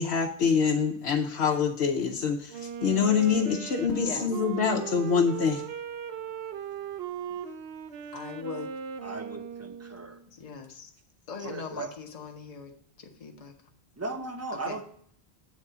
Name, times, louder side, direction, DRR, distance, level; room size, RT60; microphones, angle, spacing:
voice 1, 0.0-5.6, left 6 dB, 80° left, 1 dB, 0.9 m, -25 dB
Wind instrument woodwind instrument, 2.5-10.2, right 7 dB, 75° right, 0.9 m, -38 dB
voice 2, 4.0-4.3 8.1-8.7 10.3-10.9 11.3-12.7 13.0-13.5 14.7-14.8, left 5 dB, 35° left, 4 dB, 0.8 m, -40 dB
voice 3, 9.0-10.2 11.4-11.9 14.0-14.8, right 2 dB, 15° right, 5 dB, 0.6 m, -37 dB
8.3 x 3.6 x 6.6 m, 0.63 s
omnidirectional pair, 1.1 m